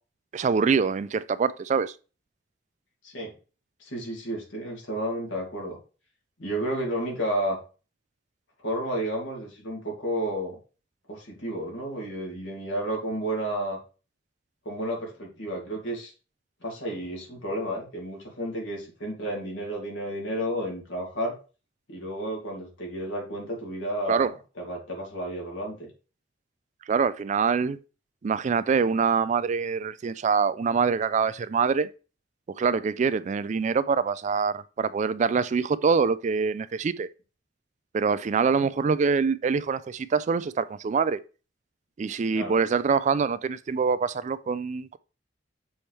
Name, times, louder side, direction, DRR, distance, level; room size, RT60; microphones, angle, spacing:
voice 1, 0.3-1.9 24.1-24.3 26.9-27.8 28.2-31.9 32.6-37.1 37.9-41.2 42.0-45.0, right 5 dB, 40° right, 0.3 m, -25 dB
voice 2, 3.8-5.8 6.4-7.6 8.6-10.6 11.1-13.8 14.6-16.1 16.6-21.3 21.9-25.9 38.3-38.7 42.3-42.6, right 1 dB, 90° left, 2.4 m, -32 dB
7.0 x 4.3 x 3.3 m
head